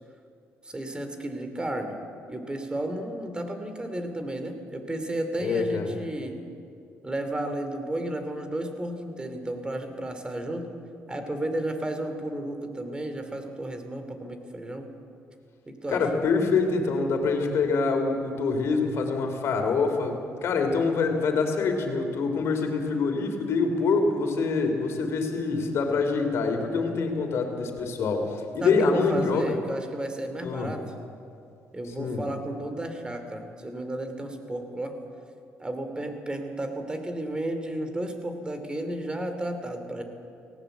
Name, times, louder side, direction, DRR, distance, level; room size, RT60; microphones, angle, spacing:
voice 1, 0.6-2.0 2.3-6.4 7.0-10.7 11.1-14.9 15.7-16.0 28.6-30.8 31.7-35.0 35.6-40.0, right 1 dB, 20° right, 7 dB, 3.0 m, -33 dB
voice 2, 5.4-5.9 15.9-29.5 30.4-30.7 32.0-32.2, left 4 dB, 65° left, 4 dB, 3.4 m, -25 dB
18.5 x 17.5 x 8.1 m, 2.4 s
cardioid pair, 80°, 5 cm